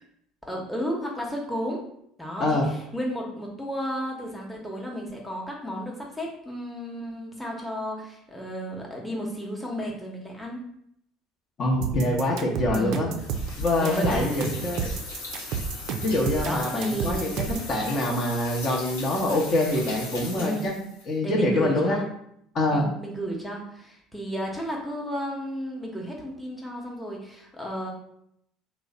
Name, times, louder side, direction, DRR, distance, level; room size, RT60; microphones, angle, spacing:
voice 1, 0.5-1.8 2.2-10.6 12.7-13.2 13.8-14.6 16.4-17.2 20.3-20.9 21.2-22.1 22.7-27.9, equal, 5° left, -2 dB, 0.8 m, -33 dB
voice 2, 11.6-13.1 13.6-14.9 16.0-20.7 21.1-22.0 22.5-22.9, left 1 dB, 45° left, -1 dB, 0.9 m, -25 dB
sound 1, 11.8-17.7, right 6 dB, 60° right, 0.4 m, -31 dB
sound 2, 13.2-21.0, left 2 dB, 90° left, 0.8 m, -38 dB
3.0 x 2.1 x 3.8 m, 0.74 s
hypercardioid pair, 70°, 0 cm